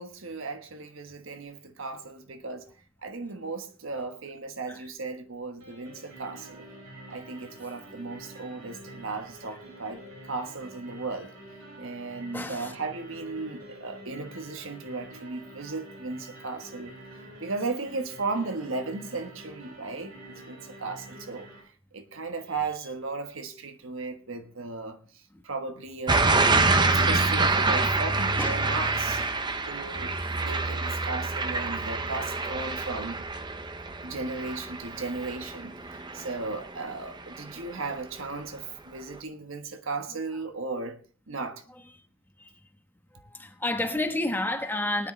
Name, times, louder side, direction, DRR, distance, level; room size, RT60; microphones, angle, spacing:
voice 1, 0.0-2.6 3.0-6.6 7.1-11.3 11.8-17.0 17.4-26.4 26.9-29.2 29.7-33.2 34.0-41.0 41.3-41.6, right 3 dB, 70° right, 1.4 m, -36 dB
sound 1, 5.6-21.6, right 1 dB, 85° right, 5.5 m, -47 dB
voice 2, 12.3-12.7 28.4-28.8 43.4-45.1, left 2 dB, 10° left, 1.2 m, -30 dB
sound 2, 26.1-36.9 37.3-37.7, right 3 dB, 20° right, 0.8 m, -26 dB
19.0 x 10.0 x 3.3 m
head